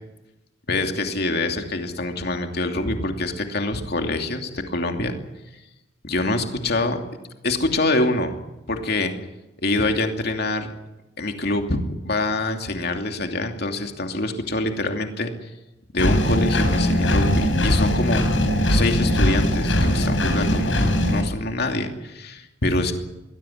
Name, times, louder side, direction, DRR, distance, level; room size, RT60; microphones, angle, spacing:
voice 1, 0.7-5.2 6.0-7.0 7.4-8.3 8.7-9.1 9.6-10.7 11.2-15.5 15.9-18.2 18.7-22.9, left 2 dB, 55° left, 4 dB, 2.7 m, -25 dB
Engine, 16.0-21.2, left 1 dB, 90° left, 5.0 m, -20 dB
22.5 x 17.0 x 10.0 m, 0.98 s
head